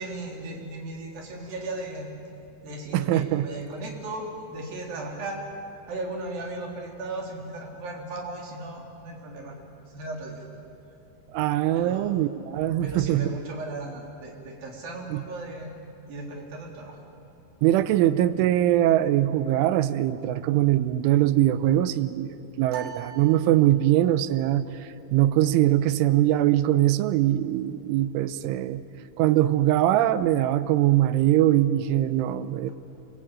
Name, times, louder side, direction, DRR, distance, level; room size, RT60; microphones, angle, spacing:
voice 1, 0.0-2.2 2.6-5.5 5.9-9.6 9.9-10.5 11.7-12.1 12.8-17.0, right 2 dB, 50° right, 0 dB, 4.9 m, -36 dB
voice 2, 2.9-3.5 11.3-13.4 15.1-15.2 17.6-28.8 29.2-32.7, right 13 dB, 90° right, 13 dB, 3.3 m, -22 dB
sound 1, 22.7-24.2, right 10 dB, 70° right, 1.5 m, -41 dB
27.0 x 23.5 x 9.0 m, 2.9 s
omnidirectional pair, 5.5 m